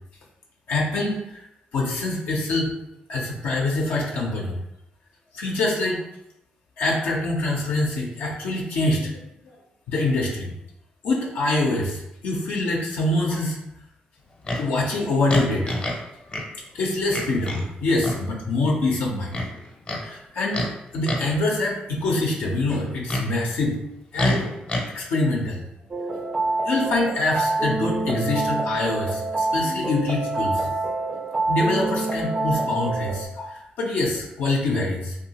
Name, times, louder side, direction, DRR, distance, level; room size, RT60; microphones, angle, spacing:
voice 1, 0.7-1.4 1.7-2.7 3.1-4.6 5.3-6.0 6.8-9.2 9.9-10.5 11.0-13.6 14.6-15.8 16.7-19.4 20.0-20.7 20.9-23.8 24.1-24.5 24.9-25.6 25.9-26.0 26.6-30.7 31.5-35.2, left 2 dB, 80° left, -1 dB, 0.5 m, -25 dB
Livestock farm animals working animals, 14.4-14.7 15.3-16.0 16.3-16.5 17.1-17.7 18.0-18.2 19.3-20.0 20.5-20.7 21.0-21.4 22.7-23.3 24.2-24.8, left 1 dB, 35° left, 0.7 m, -27 dB
sound 1, 25.9-33.3, right 2 dB, 35° right, 0.3 m, -26 dB
2.7 x 2.3 x 2.8 m, 0.82 s
cardioid pair, 70°, 3 cm